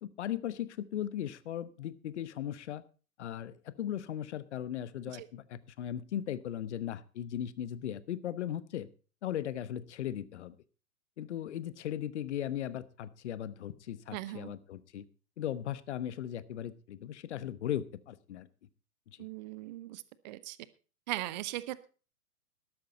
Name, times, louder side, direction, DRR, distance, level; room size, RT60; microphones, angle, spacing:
voice 1, 0.0-2.8 3.2-8.9 9.2-10.5 11.2-15.0 15.4-18.5, left 11 dB, 50° left, 17 dB, 1.0 m, -37 dB
voice 2, 14.1-14.5 19.2-20.6 21.1-21.9, right 16 dB, 30° right, 17 dB, 0.8 m, -39 dB
13.0 x 12.5 x 4.0 m, 0.35 s
figure-of-eight pair, 115°, 45 cm